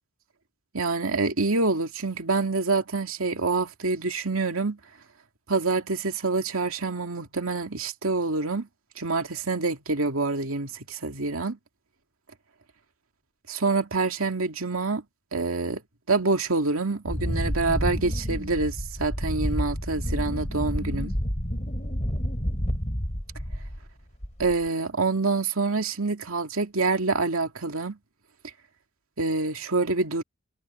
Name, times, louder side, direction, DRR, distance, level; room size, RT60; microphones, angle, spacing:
voice 1, 0.7-4.8 5.5-8.7 9.0-11.6 13.5-15.0 15.3-15.8 16.1-21.2 24.4-28.0 29.2-30.2, right 3 dB, 70° right, 2.6 m, -26 dB
Wind, 17.0-23.9 24.2-24.7, equal, 35° left, 6.8 m, -29 dB
head